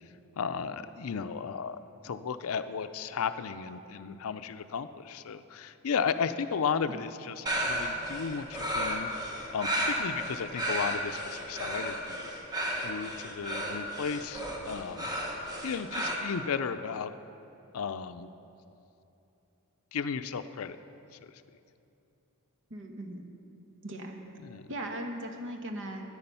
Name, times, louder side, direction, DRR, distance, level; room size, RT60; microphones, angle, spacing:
voice 1, 0.4-9.1 9.5-12.3 12.8-15.1 15.6-17.1 17.7-18.3 19.9-20.8 24.4-24.7, left 6 dB, 70° left, 11 dB, 0.5 m, -34 dB
sound 1, 7.5-16.1, equal, 20° right, 1.3 m, -33 dB
voice 2, 22.7-23.3 23.8-24.2 24.7-26.0, right 1 dB, 60° right, 4 dB, 1.2 m, -38 dB
13.0 x 9.8 x 5.5 m, 2.8 s
head